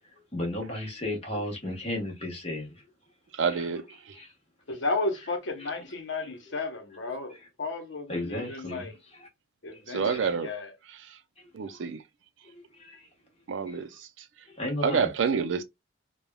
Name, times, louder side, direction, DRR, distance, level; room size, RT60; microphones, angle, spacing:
voice 1, 0.3-2.8 3.5-3.7 4.1-4.3 8.1-9.3 9.7-10.4 11.6-11.8 12.5-13.1 13.7-13.8 14.5-15.1, left 1 dB, 35° left, 1.2 m, -35 dB
voice 2, 3.4-3.8 9.9-10.5 11.5-12.0 13.5-13.9 14.8-15.6, right 6 dB, 85° right, 0.5 m, -27 dB
voice 3, 4.7-9.0 9.6-10.7, left 3 dB, 75° left, 0.9 m, -33 dB
3.3 x 2.3 x 2.2 m
head